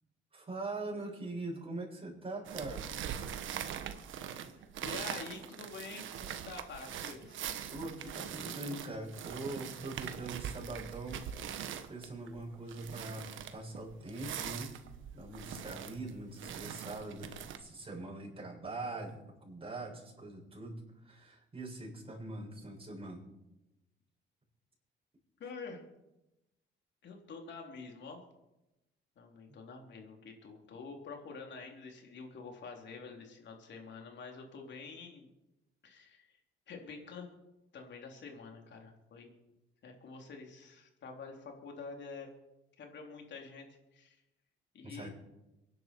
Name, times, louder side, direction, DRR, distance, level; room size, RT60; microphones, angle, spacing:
voice 1, 0.3-2.9 7.7-14.8 15.1-23.2 29.5-29.6 44.8-45.1, right 2 dB, 30° right, -2 dB, 6.8 m, -43 dB
sound 1, 2.4-17.6, right 9 dB, 80° right, 1.3 m, -42 dB
voice 2, 4.8-7.4 25.4-25.8 27.0-28.2 29.2-35.3 35.8-36.3 36.7-37.3 37.7-39.4 39.8-42.3 42.8-43.7 43.9-44.2 44.7-45.1, left 4 dB, 65° left, 2 dB, 3.6 m, -47 dB
24.0 x 10.5 x 4.6 m, 0.95 s
cardioid pair, 90°, 20 cm